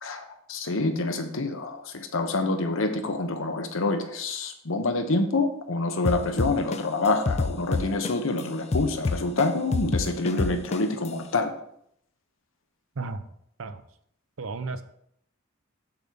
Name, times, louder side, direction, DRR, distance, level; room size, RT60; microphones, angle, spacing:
voice 1, 0.0-11.5, left 2 dB, 70° left, 6 dB, 1.0 m, -27 dB
sound 1, 6.1-8.4 8.7-11.1, left 3 dB, 30° left, 0.4 m, -27 dB
voice 2, 14.4-14.8, right 3 dB, 75° right, 10 dB, 0.7 m, -33 dB
7.0 x 6.9 x 3.9 m, 0.71 s
head